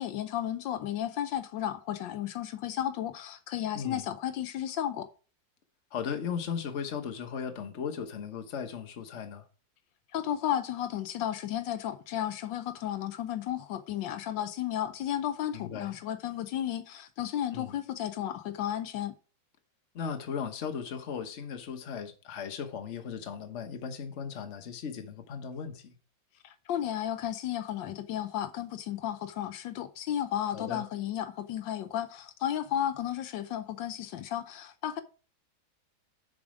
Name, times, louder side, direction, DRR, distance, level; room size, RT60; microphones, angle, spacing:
voice 1, 0.0-5.1 10.1-19.1 26.4-35.0, left 11 dB, 80° left, 1.3 m, -33 dB
voice 2, 3.7-4.0 5.9-9.4 15.5-16.0 17.5-17.7 19.9-25.9 30.5-30.8, left 7 dB, 45° left, 1.2 m, -37 dB
7.0 x 5.2 x 4.9 m
omnidirectional pair, 2.0 m